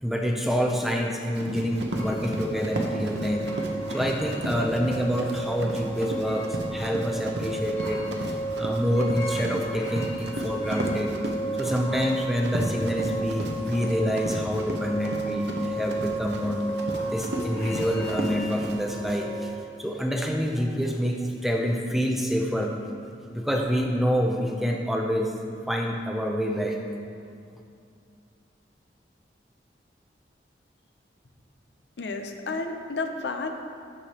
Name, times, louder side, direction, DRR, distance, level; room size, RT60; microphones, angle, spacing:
voice 1, 0.0-11.2 11.6-19.5 19.8-22.7 23.3-25.3 25.7-26.8, equal, ahead, 1 dB, 0.5 m, -27 dB
Run, 1.3-18.8, right 1 dB, 80° right, 0.8 m, -33 dB
sound 1, 1.9-19.5, right 1 dB, 25° left, 1.8 m, -33 dB
voice 2, 32.0-33.5, left 3 dB, 80° left, 5 dB, 0.6 m, -31 dB
13.0 x 4.9 x 2.9 m, 2.4 s
head